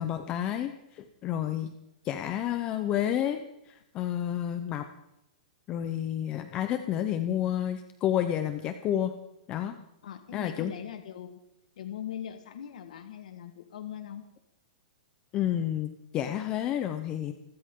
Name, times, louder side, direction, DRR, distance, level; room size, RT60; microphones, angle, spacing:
voice 1, 0.0-1.7 2.0-4.9 5.7-9.1 9.5-9.8 10.3-10.7 15.3-17.3, left 11 dB, 20° left, 8 dB, 0.7 m, -30 dB
voice 2, 10.0-11.4 11.8-14.3, left 10 dB, 60° left, 7 dB, 1.5 m, -40 dB
27.5 x 13.5 x 3.8 m, 0.84 s
hypercardioid pair, 175°, 4 cm